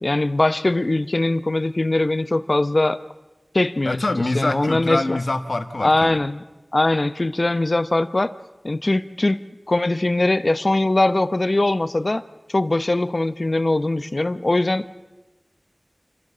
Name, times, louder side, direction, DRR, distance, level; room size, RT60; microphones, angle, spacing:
voice 1, 0.0-3.0 3.5-4.0 4.3-5.2 5.8-6.4 6.7-8.3 8.6-9.4 9.7-12.2 12.5-14.8, left 2 dB, 55° left, 14 dB, 0.8 m, -21 dB
voice 2, 3.8-6.2, left 2 dB, 80° left, 9 dB, 1.3 m, -24 dB
28.0 x 13.0 x 8.5 m, 1.1 s
wide cardioid pair, 40°, 0 cm